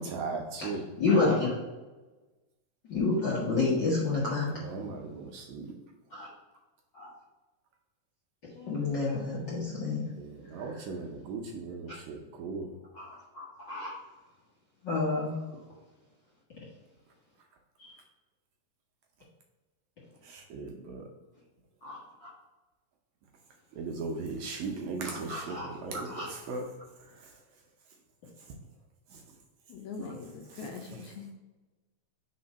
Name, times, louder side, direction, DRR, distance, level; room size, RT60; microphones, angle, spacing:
voice 1, 0.0-0.9 4.5-5.7 10.2-12.8 20.2-21.0 23.7-26.6 29.1-29.2 30.5-30.7, right 3 dB, 75° right, 1 dB, 1.9 m, -38 dB
voice 2, 1.0-1.6 2.9-4.5 6.1-6.3 6.9-7.1 8.5-10.0 10.6-10.8 12.9-13.9 14.8-15.4 17.8-17.9 21.8-22.3 25.0-25.7 25.9-26.3 30.0-30.1, left 3 dB, 55° left, -6 dB, 1.3 m, -30 dB
voice 3, 29.7-31.3, left 4 dB, 75° left, 2 dB, 1.9 m, -41 dB
4.8 x 4.3 x 5.3 m, 1.2 s
omnidirectional pair, 3.7 m